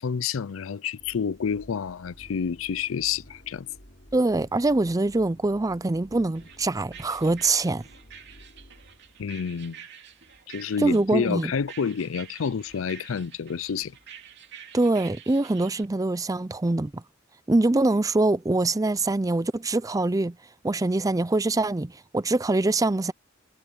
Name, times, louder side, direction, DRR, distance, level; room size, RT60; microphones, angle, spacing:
voice 1, 0.0-3.7 9.2-9.8 10.5-13.9, left 6 dB, 85° left, 0.5 m, -29 dB
sound 1, 1.0-9.3, equal, 50° left, 7.3 m, -52 dB
voice 2, 4.1-7.8 10.8-11.5 14.7-17.0 17.5-20.4 20.6-23.1, right 2 dB, 15° right, 0.5 m, -24 dB
sound 2, 6.3-15.8, right 8 dB, 60° right, 3.1 m, -48 dB
head